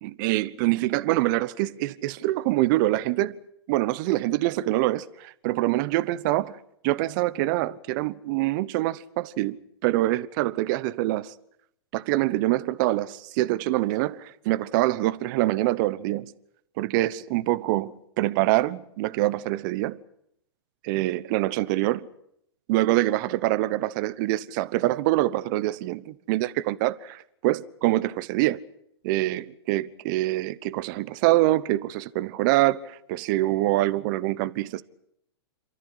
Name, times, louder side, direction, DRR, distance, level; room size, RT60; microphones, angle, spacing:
voice 1, 0.0-3.4 3.7-6.5 6.8-9.6 9.8-11.3 11.9-16.3 16.8-20.0 20.8-22.1 22.7-28.6 29.0-34.8, right 17 dB, 45° right, 1.0 m, -25 dB
27.5 x 14.0 x 9.9 m
hypercardioid pair, 110°, 14 cm